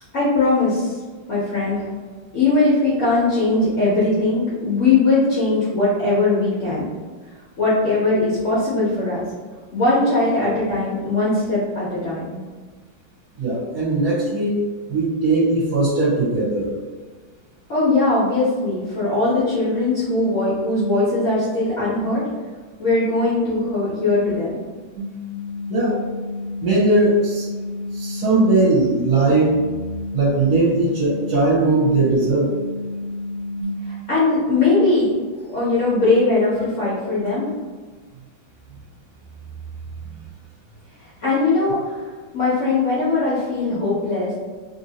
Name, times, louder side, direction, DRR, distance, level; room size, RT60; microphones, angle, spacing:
voice 1, 0.1-1.0 1.3-1.8 2.3-6.9 7.6-9.2 9.7-12.4 17.7-22.2 22.8-24.5 33.9-35.1 35.5-37.4 41.2-41.9 42.3-44.3, left 3 dB, 75° left, -9 dB, 0.6 m, -20 dB
voice 2, 13.4-14.6 14.9-16.7 25.7-26.0 26.6-27.5 27.9-29.5 30.1-32.5, right 2 dB, 60° right, -8 dB, 1.2 m, -19 dB
sound 1, 25.0-33.6, left 2 dB, 80° right, 0.8 m, -30 dB
3.1 x 2.7 x 2.8 m, 1.4 s
omnidirectional pair, 2.3 m